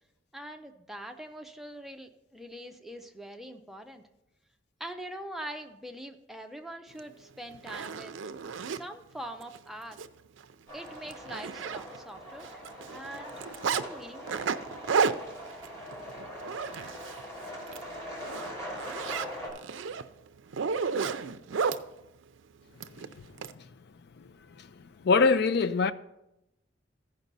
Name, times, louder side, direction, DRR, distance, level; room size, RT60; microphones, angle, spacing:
voice 1, 0.3-4.0 4.8-8.1 8.7-10.0 10.7-12.5 12.9-14.4, right 1 dB, ahead, 0.5 m, -43 dB
Zipper (clothing), 7.0-7.1 7.5-8.8 9.4-9.6 9.9-10.1 10.4-10.5 10.9-12.2 12.4-13.8 14.3-17.2 17.6-17.8 18.2-21.8 22.8-23.5, right 5 dB, 75° right, 0.4 m, -32 dB
sound 1, 10.7-19.5, equal, 15° left, 2.9 m, -42 dB
voice 2, 25.0-25.9, left 4 dB, 55° left, 0.4 m, -22 dB
14.5 x 5.3 x 4.0 m
head